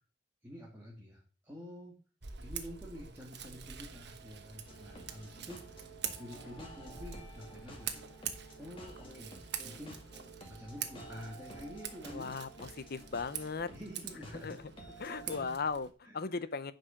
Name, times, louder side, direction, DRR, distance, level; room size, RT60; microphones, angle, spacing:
voice 1, 0.4-1.9 2.4-5.8 6.2-8.0 8.6-10.0 10.5-12.4 13.7-14.6 14.8-15.5 16.0-16.4, equal, 10° right, -3 dB, 2.2 m, -48 dB
Scissors, 2.2-15.9, right 8 dB, 60° right, 1.2 m, -45 dB
sound 1, 4.7-15.4, right 1 dB, 30° left, 2.2 m, -52 dB
voice 2, 12.1-13.7 14.4-14.6 15.0-16.7, left 4 dB, 55° left, 15 dB, 0.7 m, -37 dB
9.9 x 5.4 x 5.9 m, 0.38 s
head